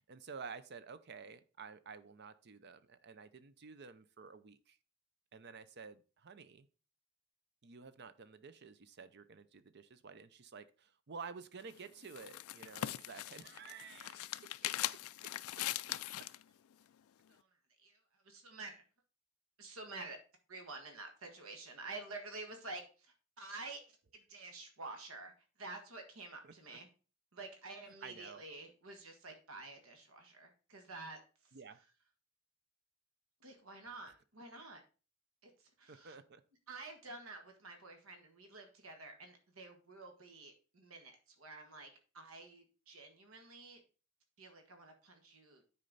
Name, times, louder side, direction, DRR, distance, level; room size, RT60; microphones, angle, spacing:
voice 1, 0.0-4.8 5.3-6.7 7.6-14.3 14.6-14.7 15.6-15.7 26.4-26.8 28.0-28.4 31.5-31.8 35.9-36.4, right 5 dB, 50° right, 13 dB, 0.6 m, -51 dB
sound 1, 11.6-16.4, left 14 dB, 90° left, 0.3 m, -41 dB
voice 2, 17.8-18.8 19.6-20.2 20.5-26.9 27.3-31.8 33.4-34.8 35.4-36.1 36.7-43.8 44.4-45.6, right 3 dB, 80° right, 4 dB, 1.6 m, -50 dB
9.6 x 4.4 x 4.0 m, 0.34 s
head